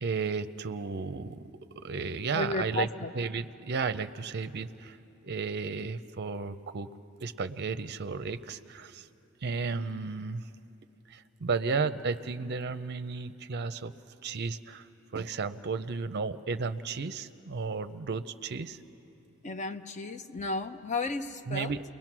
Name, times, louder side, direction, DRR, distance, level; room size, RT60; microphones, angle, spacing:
voice 1, 0.0-1.4 1.8-2.9 3.1-5.0 5.2-6.9 7.2-9.1 9.4-10.4 11.1-13.9 14.2-14.9 15.1-18.8 21.5-21.8, right 4 dB, 50° right, 11 dB, 0.6 m, -33 dB
voice 2, 2.3-3.1 19.4-21.7, left 2 dB, 35° left, 8 dB, 0.7 m, -33 dB
29.0 x 21.0 x 6.1 m, 2.8 s
head